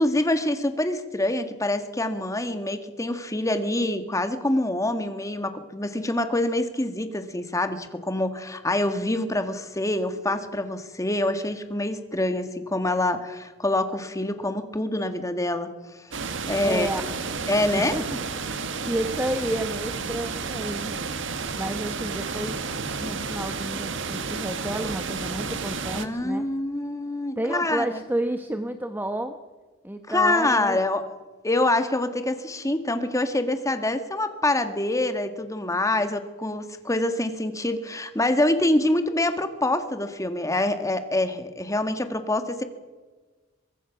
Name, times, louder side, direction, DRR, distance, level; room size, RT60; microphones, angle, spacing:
voice 1, 0.0-15.7 16.5-16.9 17.5-18.0 25.9-28.0 30.1-31.0 31.4-42.6, left 1 dB, 15° left, 8 dB, 1.8 m, -25 dB
sound 1, 16.1-26.1, right 4 dB, 70° right, 1.7 m, -31 dB
voice 2, 16.6-17.1 17.7-18.2 18.5-21.0 21.5-22.7 23.0-26.4 27.4-29.4 29.8-30.8, right 1 dB, 10° right, 7 dB, 1.0 m, -31 dB
24.0 x 21.5 x 5.9 m, 1.3 s
head